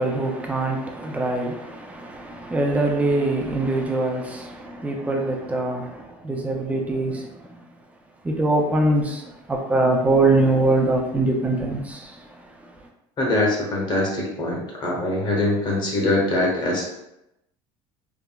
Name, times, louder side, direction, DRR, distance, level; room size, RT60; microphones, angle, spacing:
voice 1, 0.0-7.6 8.2-12.3, right 2 dB, 10° right, 0.4 m, -23 dB
voice 2, 13.2-16.8, left 2 dB, 40° left, 0.8 m, -23 dB
3.5 x 2.0 x 2.2 m
cardioid pair, 135°, 12 cm